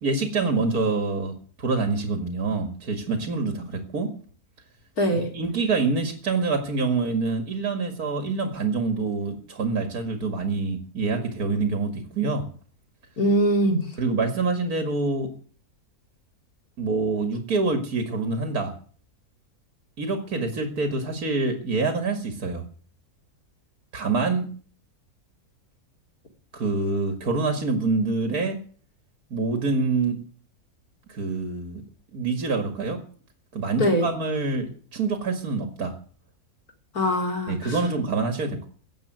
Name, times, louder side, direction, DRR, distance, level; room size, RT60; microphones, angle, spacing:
voice 1, 0.0-4.1 5.3-12.4 14.0-15.3 16.8-18.7 20.0-22.6 23.9-24.5 26.5-28.6 29.3-30.2 31.1-31.8 32.1-33.0 33.5-35.9 37.5-38.7, right 3 dB, 80° right, 6 dB, 2.6 m, -26 dB
voice 2, 5.0-5.3 13.2-13.9 33.8-34.1 36.9-37.8, equal, 85° left, 4 dB, 3.9 m, -22 dB
15.5 x 8.9 x 9.4 m, 0.44 s
omnidirectional pair, 1.6 m